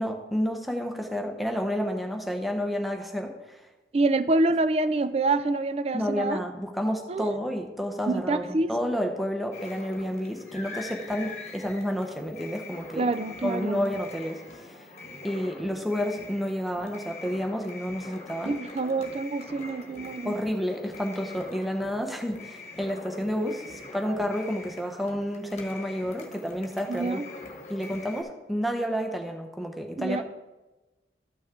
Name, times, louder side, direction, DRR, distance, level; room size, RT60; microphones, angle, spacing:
voice 1, 0.0-3.7 5.9-13.1 13.4-14.9 15.2-18.6 20.2-27.2 27.7-30.2, equal, ahead, 3 dB, 0.8 m, -30 dB
voice 2, 3.9-6.4 7.1-7.3 8.1-8.7 13.0-13.8 18.4-20.3 26.9-27.3 30.0-30.2, right 2 dB, 35° right, 12 dB, 0.4 m, -26 dB
sound 1, 9.5-28.2, left 2 dB, 40° left, 1.4 m, -43 dB
13.0 x 6.1 x 3.7 m, 1.1 s
head